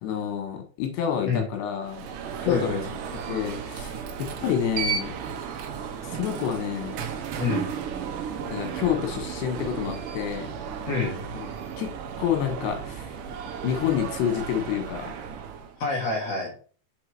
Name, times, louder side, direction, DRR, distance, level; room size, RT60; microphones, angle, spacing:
voice 1, 0.0-2.1 2.4-2.8 3.3-5.2 6.1-7.0 8.5-10.5 11.4-11.5 11.8-11.9 12.2-13.1 13.6-15.1, left 9 dB, 90° left, 4 dB, 3.4 m, -28 dB
Alarm, 1.8-15.8, right 7 dB, 80° right, 1.9 m, -34 dB
voice 2, 2.4-2.9 7.4-7.7 10.9-11.2 15.8-16.5, left 4 dB, 55° left, -1 dB, 1.9 m, -27 dB
6.4 x 4.8 x 4.6 m, 0.42 s
omnidirectional pair, 4.9 m